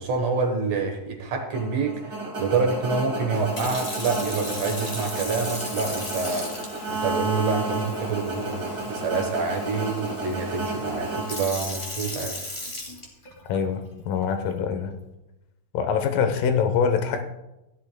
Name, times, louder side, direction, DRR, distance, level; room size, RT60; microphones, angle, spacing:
voice 1, 0.0-6.5 6.9-12.4, right 4 dB, 60° right, 3 dB, 2.2 m, -27 dB
sound 1, 1.5-12.0, right 2 dB, 35° right, 2.0 m, -32 dB
Sink (filling or washing) / Fill (with liquid), 3.3-13.6 14.2-14.5, left 1 dB, 25° left, 1.2 m, -37 dB
voice 2, 13.5-15.0 15.7-17.2, left 6 dB, 80° left, 7 dB, 2.6 m, -24 dB
16.5 x 11.0 x 2.2 m, 0.95 s
omnidirectional pair, 3.8 m